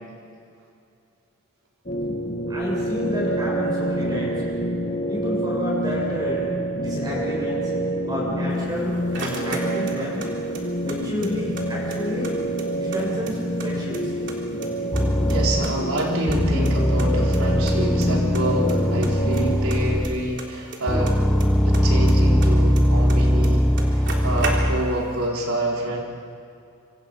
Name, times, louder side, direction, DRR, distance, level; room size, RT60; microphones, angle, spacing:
sound 1, 1.9-19.6, equal, 40° left, 1.7 m, -27 dB
voice 1, 2.5-4.4 5.1-6.5 6.7-7.7 8.0-10.2 10.8-12.3 12.9-14.1 15.0-15.1, equal, 20° right, -4 dB, 6.9 m, -30 dB
sound 2, 8.5-10.3 10.5-11.6 11.9-12.0 12.2-13.7 13.9-14.7 15.0-16.4 16.7-16.8 17.0-17.1 17.3-17.4 17.7-18.1 18.3-18.8 19.0-21.5 21.7-23.2 23.4-23.5 23.8-25.0, right 3 dB, 55° right, 3.6 m, -34 dB
sound 3, 14.9-15.8 16.3-20.4 20.9-25.0, equal, 5° left, 0.8 m, -20 dB
voice 2, 15.3-21.2 21.6-26.0, right 1 dB, 85° right, -2 dB, 4.5 m, -27 dB
26.0 x 26.0 x 5.5 m, 2.5 s
head